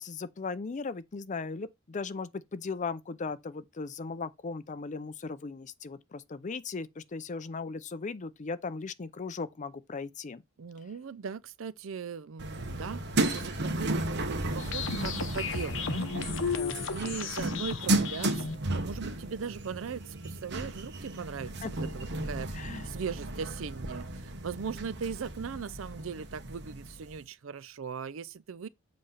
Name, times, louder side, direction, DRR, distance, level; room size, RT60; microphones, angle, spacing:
voice 1, 0.0-10.4 16.5-16.9 21.6-21.7 22.5-22.9, left 4 dB, 40° left, 0.5 m, -37 dB
voice 2, 10.6-16.6 16.9-18.5 18.7-28.7, right 6 dB, 75° right, 0.5 m, -39 dB
sound 1, 12.4-27.2, right 2 dB, 60° right, 1.1 m, -34 dB
sound 2, 14.6-18.5, left 5 dB, 65° left, 0.8 m, -34 dB
7.7 x 3.2 x 5.6 m
head